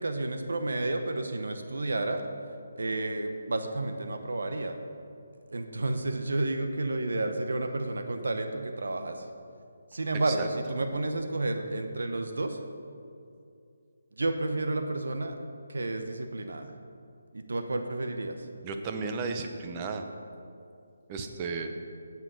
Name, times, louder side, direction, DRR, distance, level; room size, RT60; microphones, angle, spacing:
voice 1, 0.0-2.2 2.8-4.8 5.5-9.3 9.9-12.6 14.2-15.3 15.7-16.7 17.3-18.3, right 2 dB, 80° right, 6 dB, 1.0 m, -31 dB
voice 2, 18.6-20.0 21.1-21.7, right 4 dB, 25° right, 5 dB, 0.8 m, -34 dB
10.0 x 7.4 x 6.0 m, 2.5 s
figure-of-eight pair, 160°, 0 cm